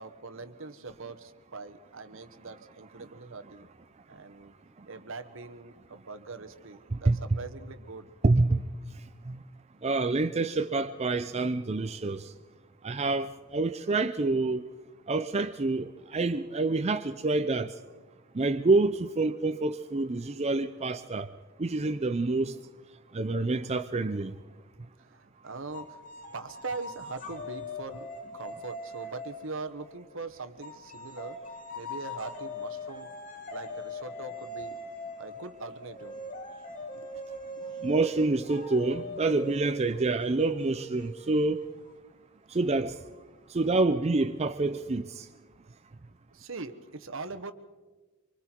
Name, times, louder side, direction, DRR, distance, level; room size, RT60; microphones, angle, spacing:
voice 1, 0.0-3.7 4.1-4.5 4.9-8.1 25.0-31.4 31.7-33.1 33.5-34.8 35.2-36.2 36.9-37.2 37.6-37.8 46.3-47.5, right 3 dB, 70° right, 1.2 m, -42 dB
voice 2, 6.9-7.4 8.2-8.6 9.3-9.4 9.8-12.3 12.8-14.6 15.1-17.7 18.3-21.3 21.6-22.5 23.1-24.3 37.8-41.6 42.5-42.9 43.5-45.2, right 3 dB, 30° right, 0.5 m, -27 dB
sound 1, 25.7-30.1 30.6-42.0, left 1 dB, 40° left, 2.0 m, -41 dB
25.0 x 24.5 x 4.5 m
head